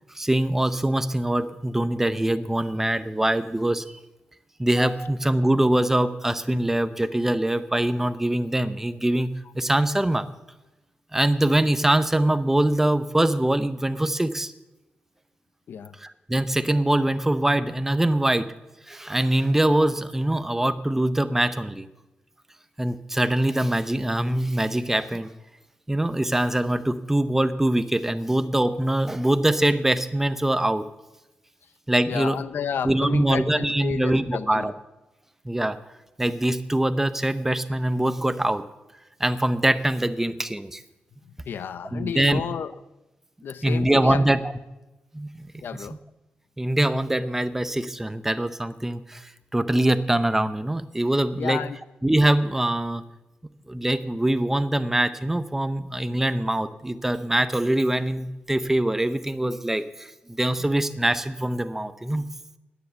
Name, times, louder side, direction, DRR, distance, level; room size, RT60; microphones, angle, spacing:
voice 1, 0.1-3.8 4.6-10.3 11.1-14.5 16.0-18.5 18.9-21.9 22.8-25.3 25.9-30.8 31.9-32.4 32.8-34.7 35.4-35.8 36.2-38.6 39.2-40.8 41.9-42.4 43.6-44.4 45.1-45.5 46.6-51.6 52.0-53.0 53.7-60.1 60.4-62.2, right 1 dB, 10° right, 12 dB, 0.7 m, -23 dB
voice 2, 32.1-34.7 41.4-42.7 43.4-44.2 45.6-46.0 51.4-51.8, left 7 dB, 75° left, 15 dB, 0.6 m, -31 dB
10.0 x 9.6 x 8.1 m, 1.0 s
wide cardioid pair, 125°, 4 cm